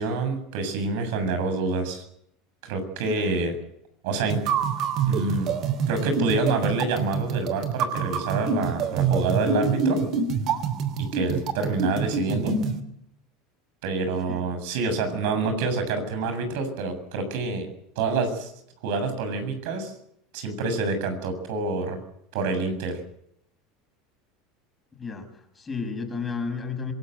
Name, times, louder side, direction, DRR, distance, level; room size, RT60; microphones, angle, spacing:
voice 1, 0.0-2.0 2.6-3.6 4.0-4.4 5.1-5.6 5.9-10.0 11.0-12.6 13.8-17.7 18.0-18.5 18.8-19.9 20.3-22.0 22.3-23.0, right 3 dB, 75° right, 8 dB, 7.4 m, -27 dB
sound 1, 4.3-12.8, right 5 dB, 45° right, 3.0 m, -26 dB
voice 2, 24.9-26.9, left 5 dB, 15° left, 5 dB, 5.9 m, -33 dB
26.0 x 19.0 x 8.0 m, 0.74 s
supercardioid pair, 130°, 0 cm